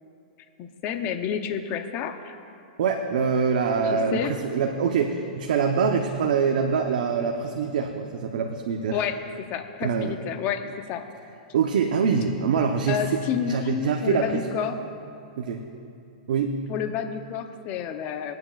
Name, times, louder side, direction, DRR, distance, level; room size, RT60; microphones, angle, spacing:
voice 1, 0.6-2.4 3.8-4.4 8.9-11.0 12.9-14.8 16.7-18.3, left 8 dB, 35° left, 7 dB, 0.7 m, -30 dB
voice 2, 2.8-9.0 9.8-10.1 11.5-13.2 13.5-14.4 15.4-15.6 16.3-16.6, right 6 dB, 75° right, 3 dB, 0.8 m, -24 dB
22.0 x 9.4 x 2.4 m, 2.6 s
hypercardioid pair, 135°, 5 cm